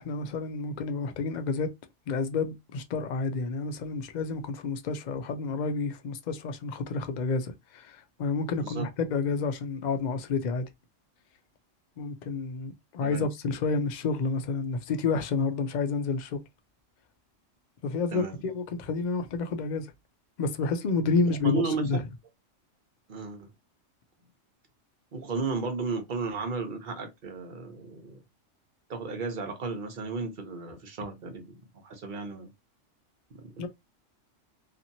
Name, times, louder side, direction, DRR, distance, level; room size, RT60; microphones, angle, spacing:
voice 1, 0.0-1.7 2.1-10.7 12.0-16.4 17.8-19.9 20.4-22.0 33.6-33.7, left 4 dB, 65° left, 0.4 m, -30 dB
voice 2, 21.4-21.9 23.1-23.5 25.1-28.2 28.9-32.5 33.3-33.7, right 4 dB, 45° right, 0.8 m, -34 dB
2.8 x 2.5 x 2.6 m
omnidirectional pair, 1.3 m